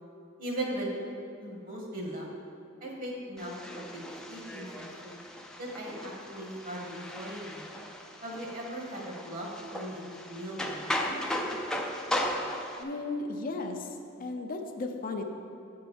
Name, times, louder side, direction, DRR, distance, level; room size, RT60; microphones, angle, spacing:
voice 1, 0.4-1.0 1.4-2.2 2.8-4.0 4.3-5.2 5.6-7.6 8.2-11.2, right 1 dB, 45° right, -2 dB, 1.7 m, -38 dB
sound 1, 3.4-12.8, left 1 dB, 5° left, 0.5 m, -37 dB
voice 2, 12.8-15.2, left 3 dB, 45° left, 4 dB, 0.6 m, -35 dB
7.8 x 4.7 x 7.0 m, 2.7 s
head